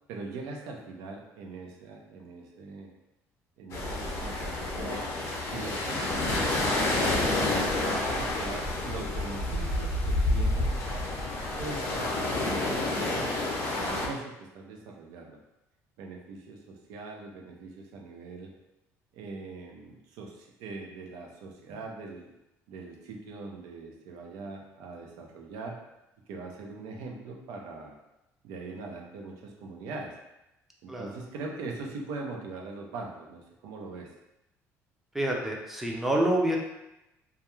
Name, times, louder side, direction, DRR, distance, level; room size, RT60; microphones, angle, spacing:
voice 1, 0.1-2.9 3.6-5.1 5.5-7.2 7.9-10.7 11.5-13.4 13.8-15.4 16.0-18.5 19.1-22.3 22.7-25.8 26.3-27.9 28.4-30.2 30.8-34.1, right 3 dB, 85° right, 0 dB, 0.5 m, -41 dB
sound 1, 3.7-14.1, left 2 dB, 55° left, 0.6 m, -29 dB
voice 2, 35.1-36.6, right 1 dB, 5° right, -1 dB, 0.5 m, -27 dB
2.3 x 2.2 x 3.0 m, 0.91 s
cardioid pair, 120°, 6 cm